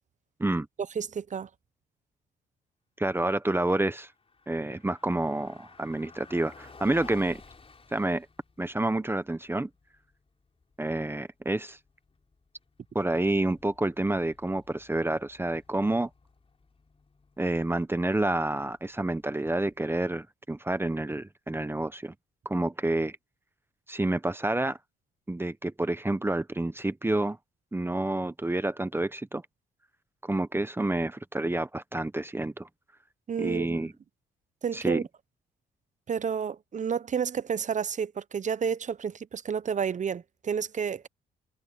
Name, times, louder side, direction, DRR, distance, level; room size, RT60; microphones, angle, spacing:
voice 1, 1.0-1.5 33.3-33.9 34.6-35.0 36.1-41.1, right 7 dB, 40° right, 0.8 m, -30 dB
voice 2, 3.0-4.1 4.5-7.4 7.9-8.3 8.6-9.7 10.8-11.8 12.9-16.1 17.4-22.1 22.4-23.2 23.9-24.8 25.3-27.4 27.7-29.4 30.2-32.7 33.4-33.9 34.7-35.0, right 2 dB, 10° right, 1.1 m, -29 dB
Car passing by, 4.0-20.1, left 4 dB, 30° left, 4.7 m, -55 dB
cardioid pair, 90°, 20 cm